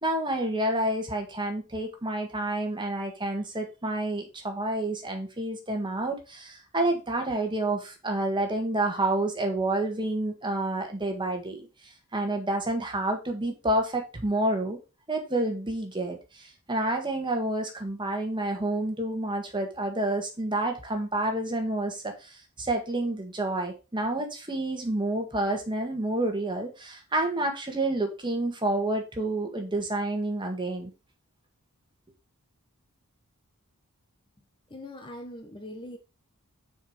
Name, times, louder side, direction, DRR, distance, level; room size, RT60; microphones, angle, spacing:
voice 1, 0.0-11.6 12.1-14.8 15.1-30.9, right 1 dB, 20° right, 3 dB, 1.7 m, -29 dB
voice 2, 34.7-36.0, left 1 dB, 20° left, 5 dB, 1.0 m, -41 dB
6.5 x 4.8 x 5.1 m, 0.29 s
head